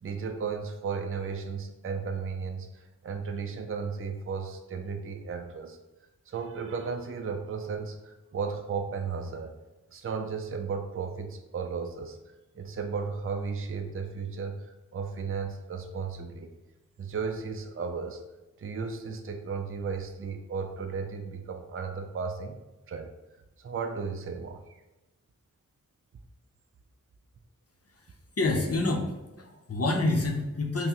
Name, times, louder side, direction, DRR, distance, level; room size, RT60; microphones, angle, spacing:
voice 1, 0.0-5.8 6.3-9.5 9.9-12.2 12.6-14.6 14.9-16.5 17.0-18.2 18.6-22.6 22.9-23.1 23.6-24.8, right 5 dB, 45° right, 5 dB, 0.4 m, -34 dB
voice 2, 28.4-29.1 29.4-30.9, left 2 dB, 50° left, 1 dB, 0.6 m, -27 dB
5.5 x 2.1 x 2.9 m, 1.1 s
wide cardioid pair, 50°, 31 cm